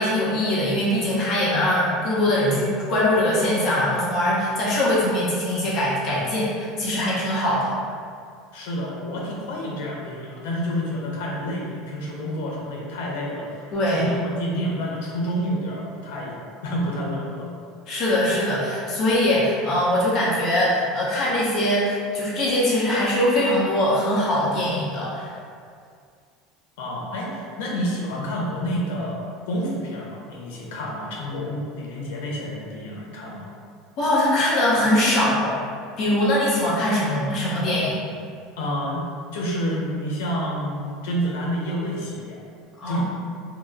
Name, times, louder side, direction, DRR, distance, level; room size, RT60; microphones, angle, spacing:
voice 1, 0.0-7.7 13.7-14.0 17.9-25.3 34.0-35.6 36.0-38.0 42.8-43.0, left 1 dB, 35° left, -6 dB, 0.8 m, -22 dB
voice 2, 8.5-16.4 16.6-17.5 26.8-29.2 29.5-33.5 38.6-42.4 42.9-43.0, equal, 90° left, -3 dB, 0.7 m, -29 dB
2.9 x 2.0 x 3.6 m, 2.2 s
cardioid pair, 175°, 0 cm